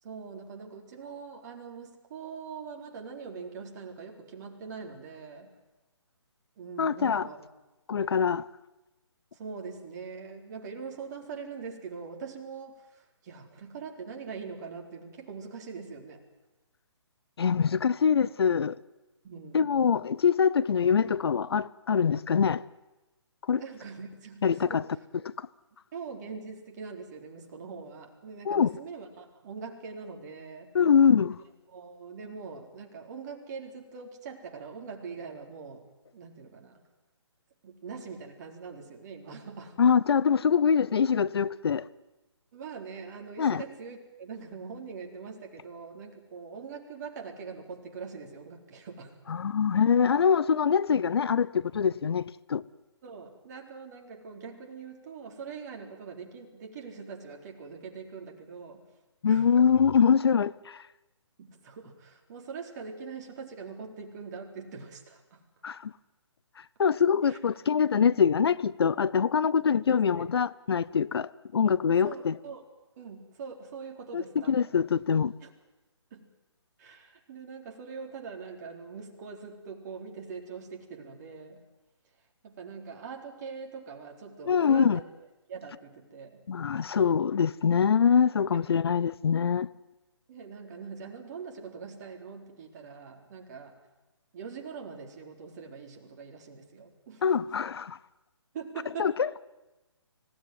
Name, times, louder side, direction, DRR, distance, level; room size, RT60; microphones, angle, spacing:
voice 1, 0.0-5.5 6.6-7.4 9.3-16.2 19.2-19.7 23.5-24.8 25.9-30.8 31.7-35.9 36.1-36.8 37.6-39.8 42.5-49.3 53.0-58.8 59.2-59.5 61.4-65.4 67.2-67.4 69.9-70.3 71.9-72.6 73.0-74.7 75.4-75.5 76.1-76.3 76.8-81.6 82.4-85.1 85.5-86.4 88.5-88.6 90.3-93.8 94.3-97.2 98.5-99.1, right 5 dB, 35° right, 3.9 m, -43 dB
voice 2, 6.8-7.2 7.9-8.4 17.4-18.8 19.5-22.6 23.5-23.6 24.4-24.8 25.2-25.5 28.4-28.7 30.7-31.4 39.8-41.9 43.4-43.6 49.3-52.2 52.5-52.6 59.2-60.8 65.6-65.9 66.8-72.3 74.1-75.3 84.5-85.0 86.5-89.7 97.2-98.0 99.0-99.4, left 7 dB, 55° left, 0.8 m, -24 dB
26.0 x 17.0 x 9.5 m
figure-of-eight pair, 145°, 15 cm